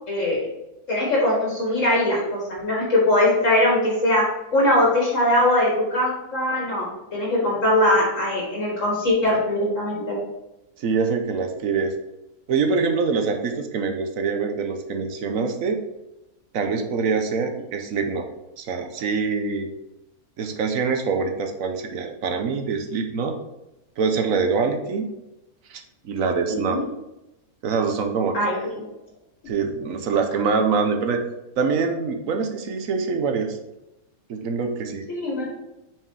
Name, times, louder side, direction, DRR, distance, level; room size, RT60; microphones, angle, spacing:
voice 1, 0.1-0.4 0.9-10.2 26.5-26.9 28.3-28.9 35.1-35.5, left 1 dB, 55° left, -4 dB, 1.9 m, -21 dB
voice 2, 10.8-11.9 12.5-15.8 16.5-18.3 18.6-19.7 20.4-23.3 24.0-25.1 25.7-26.8 27.6-28.4 29.5-31.2 31.6-33.6 34.3-35.1, right 5 dB, 65° right, 5 dB, 1.2 m, -24 dB
6.1 x 4.8 x 4.7 m, 0.94 s
omnidirectional pair, 1.6 m